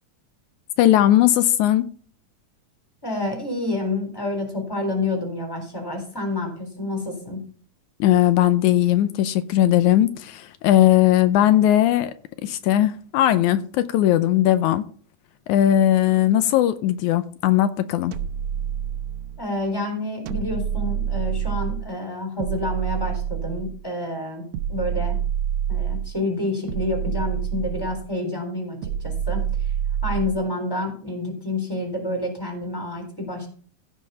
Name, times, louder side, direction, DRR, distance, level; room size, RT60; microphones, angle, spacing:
voice 1, 0.8-1.9 8.0-12.1 12.4-14.9 15.5-18.1, left 12 dB, 85° left, 2.1 m, -18 dB
voice 2, 3.0-7.4 19.4-24.4 24.7-25.2 25.7-29.4 30.0-33.5, left 2 dB, 5° left, 3.5 m, -28 dB
sound 1, 18.1-19.4 20.3-21.9 22.4-23.8 24.5-26.2 26.7-28.1 28.8-30.4, right 9 dB, 80° right, 2.2 m, -27 dB
15.5 x 5.5 x 5.6 m
omnidirectional pair, 3.4 m